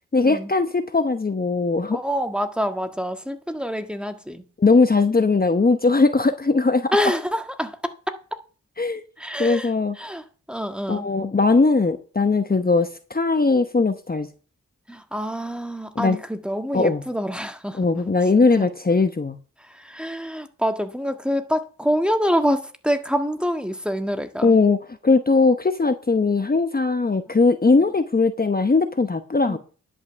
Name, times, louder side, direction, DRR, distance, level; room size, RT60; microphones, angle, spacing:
voice 1, 0.1-2.0 4.6-6.9 8.8-9.0 9.4-10.0 10.9-14.3 16.0-16.2 16.7-17.0 17.8-19.4 24.4-29.6, left 3 dB, 30° left, 1.0 m, -19 dB
voice 2, 1.9-4.5 6.9-7.8 9.2-11.1 14.9-18.1 18.6-18.7 19.6-24.5 27.3-27.4 27.7-27.8 29.4-29.6, equal, 5° right, 1.6 m, -26 dB
10.5 x 5.5 x 6.8 m
cardioid pair, 40°, 32 cm